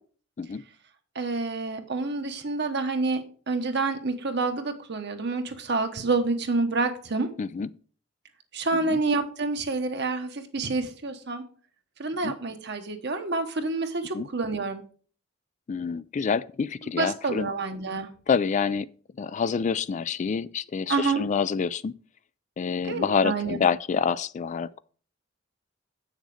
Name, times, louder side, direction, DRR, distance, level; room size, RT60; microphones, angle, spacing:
voice 1, 1.1-7.3 8.5-11.4 12.0-14.8 17.0-18.1 20.9-21.2 22.8-23.6, right 3 dB, 60° right, 1.2 m, -28 dB
voice 2, 7.4-7.7 8.8-9.0 12.2-12.3 14.1-14.3 15.7-17.5 18.3-18.9 19.2-21.9 22.6-24.8, left 6 dB, 40° left, 0.3 m, -27 dB
8.2 x 6.5 x 4.9 m
head